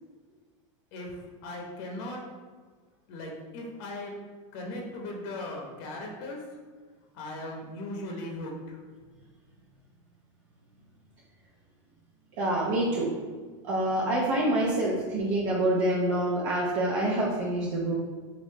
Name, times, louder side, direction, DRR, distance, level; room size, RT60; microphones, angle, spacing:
voice 1, 1.4-2.2 3.1-4.1 4.5-6.4 7.1-8.5, left 1 dB, 55° left, 0 dB, 0.7 m, -38 dB
voice 2, 12.4-13.1 13.6-18.0, right 1 dB, 55° right, -5 dB, 0.6 m, -26 dB
3.1 x 2.5 x 3.3 m, 1.5 s
supercardioid pair, 140°, 16 cm